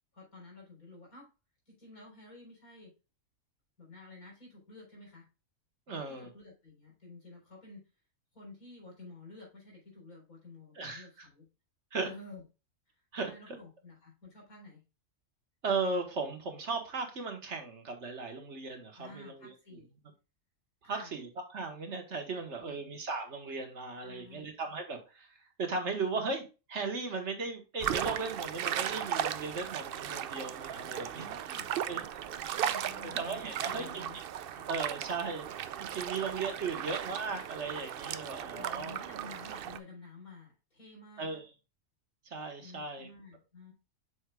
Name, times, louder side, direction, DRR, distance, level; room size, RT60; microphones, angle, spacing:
voice 1, 0.1-1.3 1.7-2.9 3.8-5.3 5.9-7.8 8.3-11.5 12.0-12.4 13.2-14.8 18.9-19.9 20.8-21.1 22.6-22.9 24.0-24.5 31.1-31.7 32.5-34.7 36.7-36.9 38.4-41.3 42.6-43.7, left 2 dB, 85° left, -2 dB, 4.3 m, -51 dB
voice 2, 5.9-6.3 10.7-11.1 11.9-12.1 13.1-13.6 15.6-19.5 20.8-26.4 26.7-31.2 31.9-32.2 33.0-34.0 34.7-35.5 35.9-39.0 41.2-41.4 42.2-43.1, right 4 dB, 55° right, 5 dB, 1.5 m, -37 dB
sound 1, 27.8-39.8, right 10 dB, 70° right, 0.5 m, -36 dB
7.9 x 6.3 x 2.3 m, 0.31 s
omnidirectional pair, 1.5 m